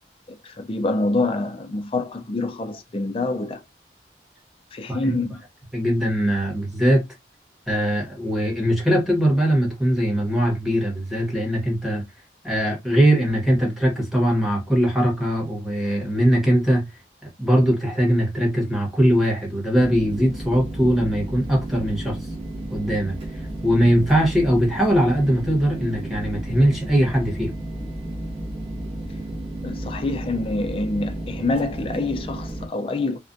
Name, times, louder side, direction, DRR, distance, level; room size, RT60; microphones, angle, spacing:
voice 1, 0.3-3.6 4.7-5.4 29.6-33.2, left 2 dB, 30° left, 0.3 m, -26 dB
voice 2, 5.7-7.0 7.7-12.0 12.4-16.9 17.2-22.3 22.7-27.5, equal, ahead, 1.0 m, -21 dB
sound 1, 19.8-32.7, right 1 dB, 30° right, 0.6 m, -33 dB
2.4 x 2.1 x 2.5 m
head